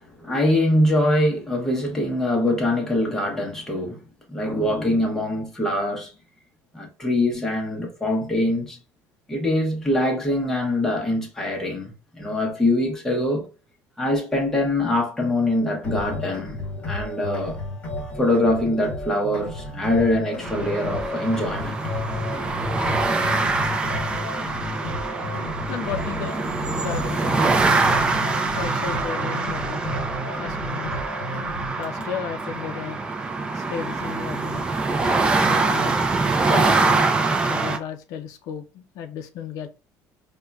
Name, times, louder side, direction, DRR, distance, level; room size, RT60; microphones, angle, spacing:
voice 1, 0.0-4.0 4.3-6.1 6.7-8.8 9.3-13.5 14.0-17.6 18.2-21.8, left 1 dB, 5° left, 0.7 m, -23 dB
sound 1, 15.8-31.8, left 2 dB, 25° left, 1.2 m, -32 dB
sound 2, 20.4-37.8, right 3 dB, 15° right, 0.3 m, -24 dB
voice 2, 25.7-26.4 26.8-27.8 28.5-29.8 30.4-31.0 31.8-33.1 33.5-34.7 35.4-36.0 36.5-37.0 37.4-39.7, left 7 dB, 60° left, 0.4 m, -34 dB
5.0 x 2.2 x 2.2 m
cardioid pair, 170°, 7 cm